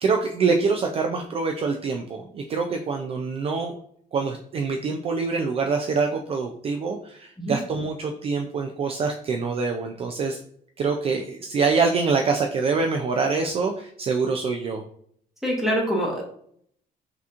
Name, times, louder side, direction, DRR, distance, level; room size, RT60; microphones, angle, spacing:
voice 1, 0.0-3.7 4.1-10.4 10.8-14.8, right 4 dB, 40° right, 4 dB, 0.3 m, -25 dB
voice 2, 15.4-16.2, equal, ahead, -3 dB, 1.2 m, -24 dB
5.8 x 2.9 x 2.5 m, 0.64 s
cardioid pair, 155°, 16 cm